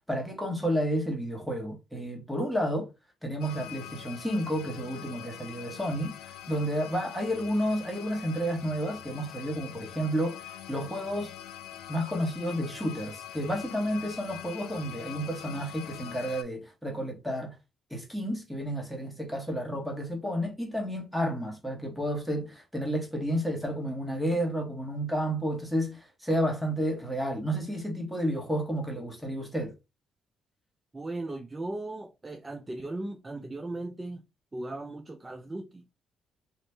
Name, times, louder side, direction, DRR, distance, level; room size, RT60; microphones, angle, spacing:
voice 1, 0.1-2.9 3.2-10.4 10.7-11.3 11.9-17.5 17.9-29.7, equal, ahead, 1.2 m, -31 dB
sound 1, 3.4-16.4, left 12 dB, 85° left, 0.4 m, -44 dB
voice 2, 30.9-34.2 34.5-35.8, right 2 dB, 20° right, 0.4 m, -37 dB
2.8 x 2.4 x 3.4 m
cardioid pair, 90°, 0 cm